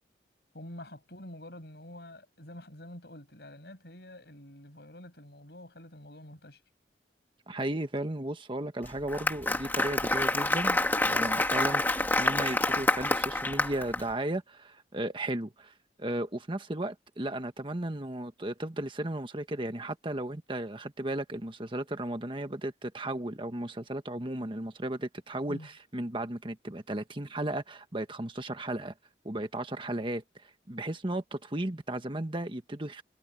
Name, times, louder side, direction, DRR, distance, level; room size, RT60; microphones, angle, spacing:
voice 1, 0.5-6.6 25.5-25.7, left 1 dB, 65° left, 7.4 m, -47 dB
voice 2, 7.5-15.7 16.0-28.9 29.2-33.0, right 1 dB, 30° right, 1.4 m, -35 dB
Applause, 8.9-14.0, left 2 dB, 10° left, 1.6 m, -27 dB
head